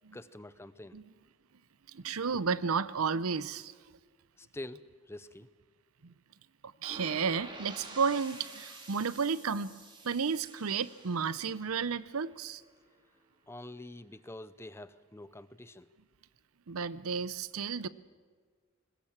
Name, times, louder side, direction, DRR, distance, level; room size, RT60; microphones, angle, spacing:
voice 1, 0.1-1.0 4.4-5.5 13.5-15.9, left 1 dB, 10° left, 15 dB, 0.6 m, -46 dB
voice 2, 1.9-3.7 6.0-6.1 6.8-9.7 10.0-12.6 16.7-17.9, right 5 dB, 85° right, 17 dB, 0.7 m, -32 dB
sound 1, 6.8-12.7, right 2 dB, 25° right, 3.3 m, -49 dB
21.0 x 20.0 x 7.3 m, 1.6 s
head